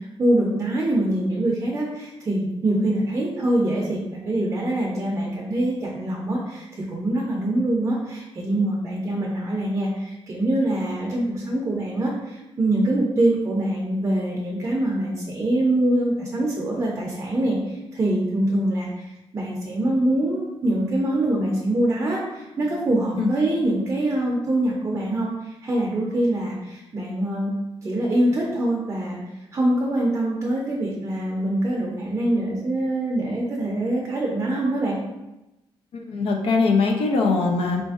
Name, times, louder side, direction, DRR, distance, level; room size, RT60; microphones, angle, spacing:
voice 1, 0.0-27.5 27.8-29.2 29.5-35.0, right 1 dB, 30° right, -3 dB, 0.5 m, -24 dB
voice 2, 35.9-37.8, left 4 dB, 75° left, 2 dB, 0.5 m, -21 dB
3.8 x 2.5 x 2.4 m, 0.97 s
cardioid pair, 135°, 10 cm